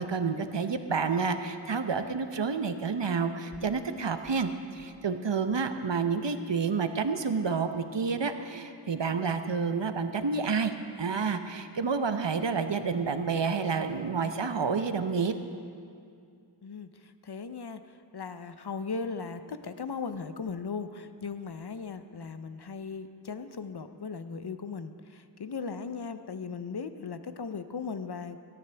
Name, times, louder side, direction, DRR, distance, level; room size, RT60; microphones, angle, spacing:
voice 1, 0.0-4.5 4.7-15.3, right 5 dB, 70° right, 8 dB, 0.8 m, -29 dB
voice 2, 16.6-28.4, left 5 dB, 60° left, 10 dB, 0.7 m, -38 dB
17.5 x 13.0 x 3.4 m, 2.3 s
wide cardioid pair, 40°, 45 cm